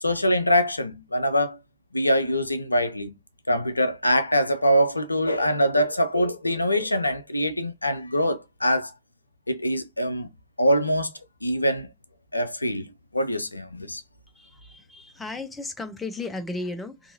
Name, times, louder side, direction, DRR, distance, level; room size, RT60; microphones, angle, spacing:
voice 1, 0.0-1.6 1.9-3.1 3.5-8.9 9.5-10.3 10.6-11.1 11.4-11.9 12.3-14.0, equal, 85° left, 0.4 m, -24 dB
voice 2, 14.3-17.1, left 2 dB, 10° left, 0.6 m, -35 dB
2.7 x 2.6 x 2.6 m
figure-of-eight pair, 90°, 0 cm